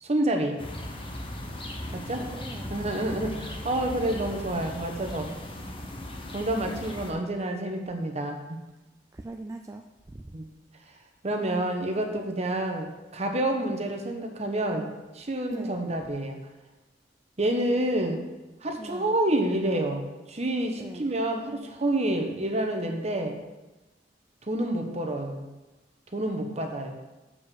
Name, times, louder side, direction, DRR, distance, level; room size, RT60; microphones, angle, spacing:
voice 1, 0.0-0.6 1.9-2.3 2.7-5.3 6.3-8.6 10.3-10.5 11.2-14.9 15.1-16.4 17.4-18.2 18.6-23.4 24.5-25.4 26.1-26.9, right 1 dB, 35° right, 4 dB, 1.1 m, -28 dB
sound 1, 0.6-7.1, left 1 dB, 30° left, 1.1 m, -38 dB
voice 2, 2.1-2.9 3.2-3.4 9.1-9.8 10.1-10.2 15.5-15.8 18.8-19.1 20.7-21.1, right 2 dB, 15° right, 4 dB, 0.3 m, -41 dB
7.0 x 5.2 x 7.1 m, 1.1 s
head